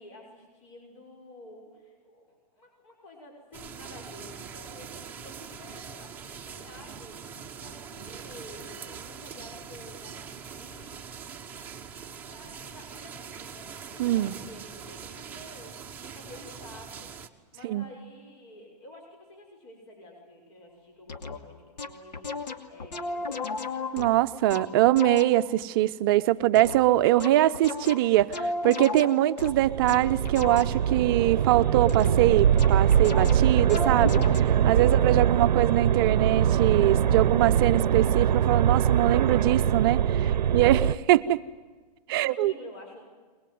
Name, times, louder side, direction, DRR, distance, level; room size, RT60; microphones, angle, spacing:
voice 1, 0.0-11.0 12.1-17.1 17.5-23.6 40.2-40.5 42.1-43.0, left 1 dB, 45° left, 1 dB, 5.9 m, -50 dB
sound 1, 3.5-17.3, right 6 dB, 10° right, 1.0 m, -43 dB
voice 2, 14.0-14.4 17.6-17.8 23.9-40.2 40.5-41.4 42.1-42.5, right 15 dB, 35° right, 11 dB, 0.7 m, -23 dB
sound 2, 21.1-21.4 21.8-25.5 26.5-31.0 31.9-32.3 32.6-34.4, left 3 dB, 90° left, 2.6 m, -34 dB
sound 3, 29.4-41.0, right 9 dB, 85° right, 0.7 m, -23 dB
21.5 x 21.5 x 9.4 m, 1.4 s
hypercardioid pair, 155°, 21 cm